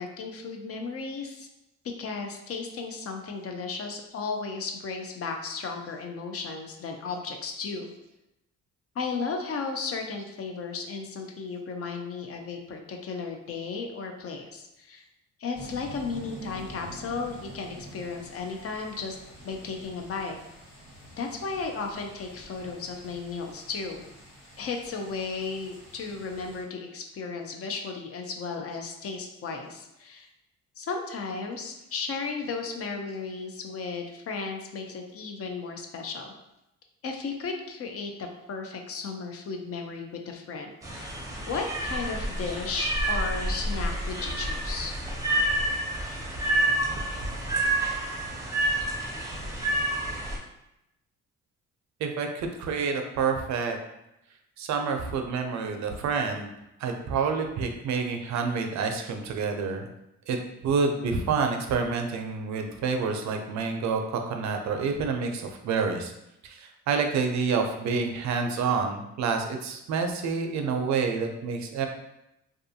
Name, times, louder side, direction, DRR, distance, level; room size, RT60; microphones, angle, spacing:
voice 1, 0.0-1.5 2.0-7.9 8.9-15.0 15.4-19.2 19.4-20.4 21.2-24.0 24.6-30.3 30.8-36.3 37.0-41.2 41.5-44.9, left 4 dB, 50° left, 3 dB, 0.5 m, -34 dB
sound 1, 15.5-26.6, right 1 dB, 85° left, 1.5 m, -47 dB
sound 2, 40.8-50.4, right 1 dB, 10° right, 0.6 m, -29 dB
voice 2, 52.0-53.8 54.6-56.5 56.8-59.9 60.3-60.4 60.6-66.1 66.4-71.9, right 5 dB, 70° right, 4 dB, 0.5 m, -28 dB
2.5 x 2.3 x 2.6 m, 0.87 s
cardioid pair, 90°, 30 cm